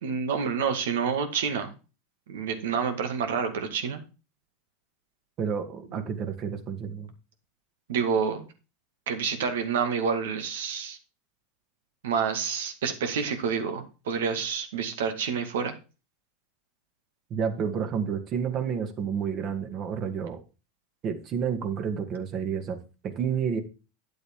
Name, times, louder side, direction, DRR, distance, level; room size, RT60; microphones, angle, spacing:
voice 1, 0.0-1.7 2.3-4.0 5.9-6.0 7.9-8.5 9.1-11.0 12.0-15.7, right 6 dB, 75° right, 7 dB, 2.1 m, -28 dB
voice 2, 5.4-7.1 17.3-20.4 21.0-22.8 23.0-23.6, right 7 dB, 40° right, 6 dB, 2.2 m, -30 dB
9.9 x 7.8 x 3.7 m, 0.32 s
hypercardioid pair, 95°, 0 cm